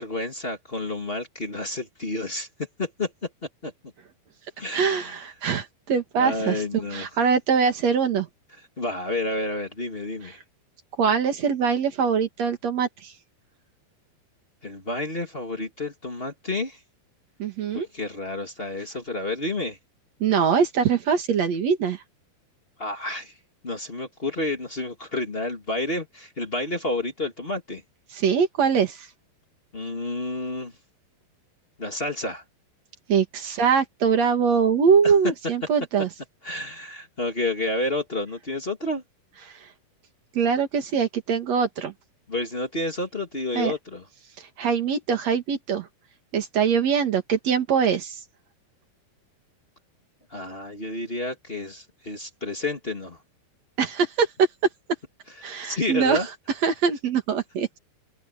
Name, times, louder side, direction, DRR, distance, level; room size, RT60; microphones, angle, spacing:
voice 1, 0.0-2.5 2.8-3.3 3.6-3.7 4.6-5.2 6.2-7.1 8.8-10.4 14.6-16.8 17.7-19.8 22.8-23.3 23.6-27.8 29.7-30.7 31.8-32.4 35.0-35.1 36.4-39.0 42.3-44.0 50.3-53.2 55.4-56.3, left 2 dB, 30° left, 1.1 m, -30 dB
voice 2, 4.7-6.6 6.9-8.3 11.0-13.1 17.4-17.9 20.2-22.0 28.1-29.1 33.1-36.1 40.3-41.9 43.5-43.7 44.6-45.9 46.3-48.1 53.8-54.3 55.4-56.2 56.6-57.8, right 6 dB, 50° right, 2.5 m, -23 dB
open air
omnidirectional pair, 4.9 m